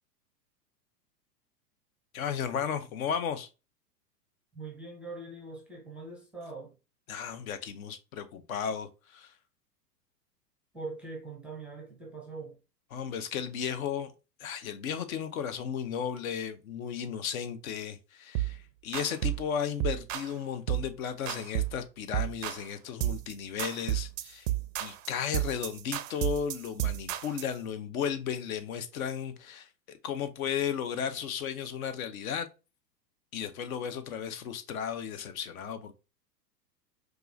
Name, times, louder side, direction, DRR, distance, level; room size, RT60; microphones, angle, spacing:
voice 1, 2.1-3.5 7.1-9.3 12.9-14.1 14.4-24.5 24.8-32.5 33.3-35.9, left 8 dB, 55° left, 0.7 m, -34 dB
voice 2, 4.5-6.7 10.7-12.6, right 3 dB, 5° right, 0.5 m, -42 dB
sound 1, 18.3-18.6 18.9-19.4 19.8-20.3 20.7-20.9 21.3-21.8 22.1-22.7 23.0-23.3 23.6-27.5, right 14 dB, 55° right, 0.5 m, -32 dB
4.7 x 2.4 x 2.5 m
hypercardioid pair, 105°, 50 cm